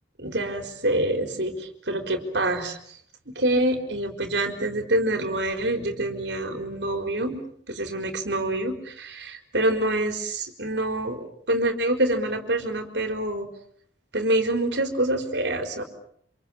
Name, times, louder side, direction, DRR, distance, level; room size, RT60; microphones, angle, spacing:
voice 1, 0.2-2.8 3.3-7.4 7.7-13.5 14.1-15.8, right 1 dB, 60° right, 6 dB, 4.3 m, -26 dB
28.0 x 27.0 x 7.3 m, 0.65 s
head